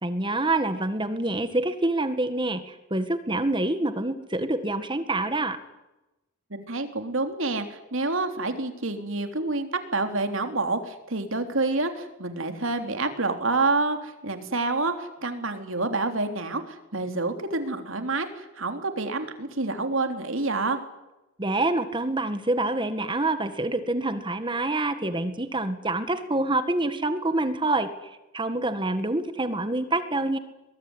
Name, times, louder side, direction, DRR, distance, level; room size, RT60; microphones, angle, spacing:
voice 1, 0.0-5.6 21.4-30.4, right 2 dB, 20° right, 10 dB, 1.8 m, -26 dB
voice 2, 6.5-20.8, right 3 dB, 60° right, 7 dB, 3.6 m, -28 dB
23.5 x 22.5 x 9.9 m, 0.99 s
head